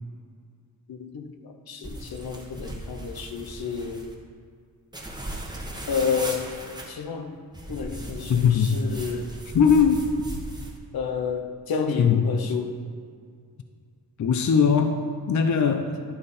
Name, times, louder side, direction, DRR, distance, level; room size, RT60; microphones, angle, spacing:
voice 1, 0.9-4.1 5.9-6.5 6.9-7.4 7.7-9.3 10.9-12.8, left 6 dB, 85° left, 5 dB, 0.9 m, -30 dB
sound 1, 1.8-4.1 4.9-6.9 7.5-10.8, right 1 dB, 10° right, 1.1 m, -37 dB
voice 2, 8.3-8.8 9.5-10.1 12.0-12.2 14.2-15.0 15.3-15.9, left 6 dB, 55° left, 6 dB, 0.6 m, -19 dB
11.0 x 5.1 x 4.2 m, 2.1 s
wide cardioid pair, 130°, 36 cm